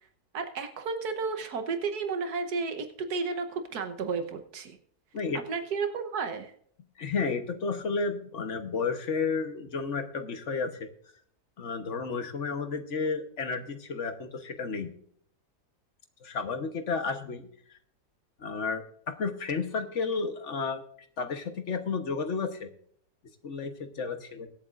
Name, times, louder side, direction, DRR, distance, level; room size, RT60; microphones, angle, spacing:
voice 1, 0.3-4.8 5.5-6.5, right 4 dB, 75° right, 7 dB, 1.5 m, -32 dB
voice 2, 7.0-10.9 11.6-14.9 16.2-17.4 18.4-20.8 21.2-22.7 23.4-24.5, left 4 dB, 50° left, 7 dB, 1.3 m, -32 dB
22.5 x 8.6 x 2.5 m, 0.62 s
omnidirectional pair, 1.7 m